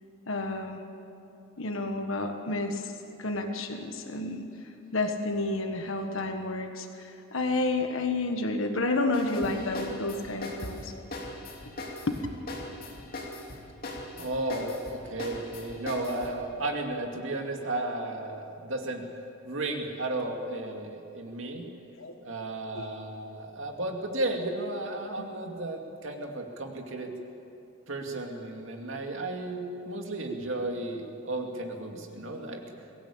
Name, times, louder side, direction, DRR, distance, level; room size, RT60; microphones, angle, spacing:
voice 1, 0.3-0.8 1.6-2.9 3.2-4.5 4.9-10.9 12.1-12.2 22.0-22.1 22.7-22.8, left 2 dB, 65° left, 5 dB, 1.5 m, -30 dB
sound 1, 9.1-16.4, left 2 dB, 45° left, 3.1 m, -40 dB
voice 2, 14.2-19.1 19.4-21.7 22.2-27.1 27.9-32.6, right 2 dB, 65° right, 2 dB, 2.5 m, -34 dB
22.5 x 16.5 x 8.7 m, 2.9 s
head